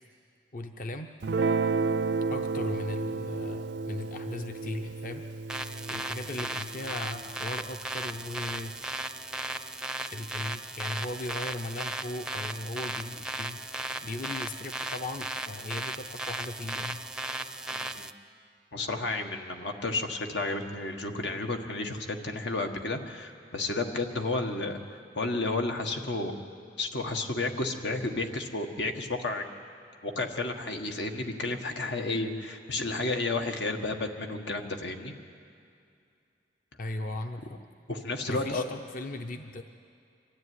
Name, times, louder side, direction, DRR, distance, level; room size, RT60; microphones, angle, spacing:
voice 1, 0.5-1.1 2.3-5.2 5.9-8.7 10.1-13.6 14.0-17.0 36.8-37.6 38.3-39.6, left 2 dB, 50° left, 6 dB, 0.7 m, -37 dB
Guitar, 1.2-7.8, right 4 dB, 85° right, 0.5 m, -32 dB
sound 1, 5.5-18.1, right 2 dB, 5° right, 0.5 m, -36 dB
voice 2, 17.7-18.1 18.7-26.4 26.8-29.5 30.0-35.1 37.9-38.6, left 2 dB, 90° left, 4 dB, 1.7 m, -32 dB
25.0 x 13.5 x 9.6 m, 2.4 s
head